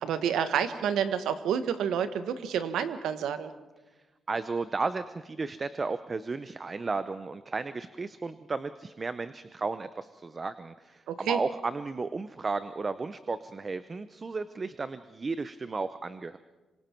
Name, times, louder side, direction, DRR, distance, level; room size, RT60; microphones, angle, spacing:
voice 1, 0.0-3.5 11.1-11.4, right 8 dB, 85° right, 10 dB, 1.3 m, -29 dB
voice 2, 4.3-16.4, right 4 dB, 25° right, 12 dB, 0.6 m, -34 dB
26.5 x 25.5 x 4.5 m, 1.2 s
cardioid pair, 130°, 0 cm